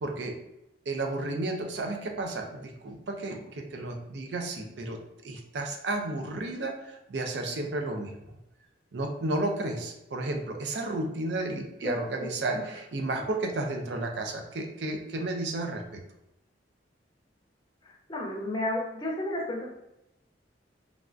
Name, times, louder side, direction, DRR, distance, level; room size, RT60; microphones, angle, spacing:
voice 1, 0.0-0.4 0.9-8.1 8.9-16.0, right 2 dB, 65° right, 4 dB, 0.5 m, -32 dB
voice 2, 11.8-12.7 18.1-19.7, left 1 dB, 25° left, -1 dB, 0.5 m, -32 dB
3.3 x 2.4 x 2.5 m, 0.86 s
head